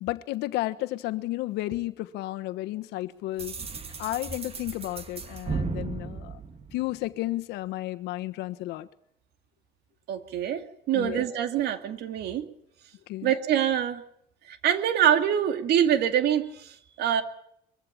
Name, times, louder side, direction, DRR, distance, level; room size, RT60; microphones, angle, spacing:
voice 1, 0.0-3.5 4.0-6.4 6.7-8.9 10.9-11.2 13.1-13.4, left 17 dB, 90° left, 1.3 m, -32 dB
sound 1, 3.4-7.2, right 5 dB, 35° right, 2.3 m, -36 dB
voice 2, 10.1-12.5 13.2-14.0 14.5-17.2, right 9 dB, 75° right, 2.3 m, -25 dB
23.0 x 15.5 x 8.8 m
cardioid pair, 110°, 17 cm